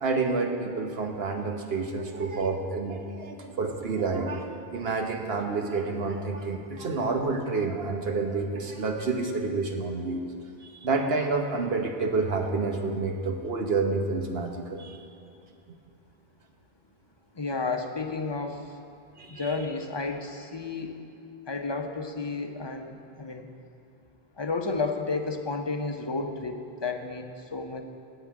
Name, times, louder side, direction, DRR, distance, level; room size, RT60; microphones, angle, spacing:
voice 1, 0.0-10.2 10.6-15.0 19.2-19.5, right 3 dB, 70° right, 3 dB, 1.3 m, -29 dB
voice 2, 17.4-18.7 19.3-21.0 21.5-23.5 24.4-27.8, left 3 dB, 30° left, 5 dB, 0.7 m, -32 dB
9.5 x 8.1 x 8.5 m, 2.6 s
omnidirectional pair, 1.0 m